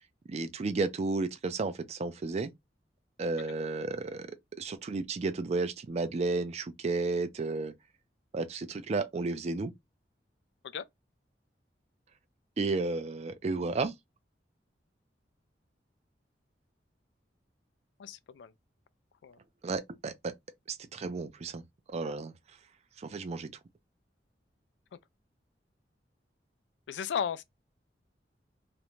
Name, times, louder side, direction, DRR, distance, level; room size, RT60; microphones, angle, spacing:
voice 1, 0.3-2.5 3.2-7.7 8.3-9.7 12.6-13.9 19.6-20.3 20.7-21.6 21.9-22.3 23.0-23.5, right 3 dB, 40° right, 0.4 m, -32 dB
voice 2, 18.0-18.5 19.2-19.4 26.9-27.4, left 7 dB, 85° left, 0.3 m, -34 dB
2.5 x 2.1 x 3.0 m
head